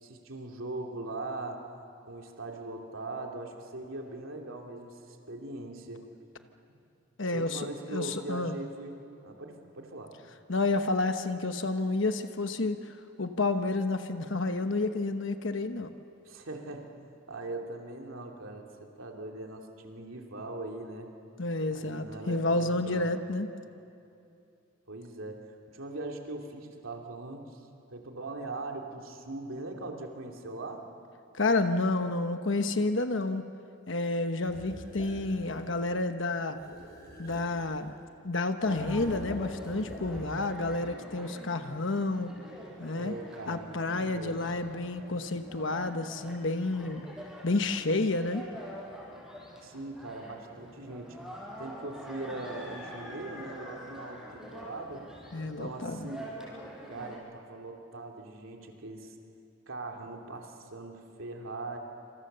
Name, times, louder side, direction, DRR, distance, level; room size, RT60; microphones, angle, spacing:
voice 1, 0.0-1.6 2.0-6.1 6.7-6.8 7.3-10.2 16.2-16.9 17.3-21.1 21.7-23.1 24.9-30.9 43.0-44.4 49.6-51.2 51.6-55.1 55.4-56.4 56.8-59.2 59.7-61.8, right 2 dB, 80° right, 2 dB, 2.8 m, -41 dB
voice 2, 7.2-8.6 10.5-15.9 21.4-23.5 31.3-33.4 33.9-36.6 37.2-37.9 38.2-42.3 42.8-43.2 43.5-47.0 47.4-48.5 55.3-56.1, left 2 dB, 65° left, 8 dB, 1.1 m, -30 dB
sound 1, 34.4-35.7 36.5-38.1 38.6-40.6, equal, 50° left, 7.0 m, -45 dB
sound 2, 38.6-57.2, equal, ahead, 5.7 m, -46 dB
27.5 x 27.0 x 6.8 m, 2.6 s
head